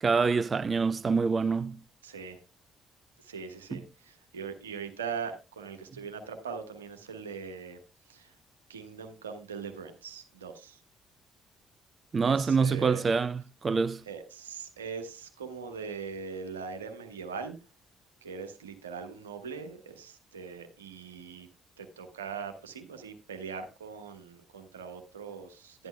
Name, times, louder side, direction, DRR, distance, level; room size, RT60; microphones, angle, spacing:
voice 1, 0.0-1.8 3.7-3.8 12.1-14.0, right 5 dB, 35° right, 0.4 m, -26 dB
voice 2, 2.0-2.4 3.2-7.8 8.1-8.4 8.7-10.8 12.2-13.0 14.1-17.6 18.2-21.5 21.8-25.9, right 6 dB, 80° right, 1.3 m, -41 dB
11.5 x 11.0 x 2.2 m
figure-of-eight pair, 45°, 0 cm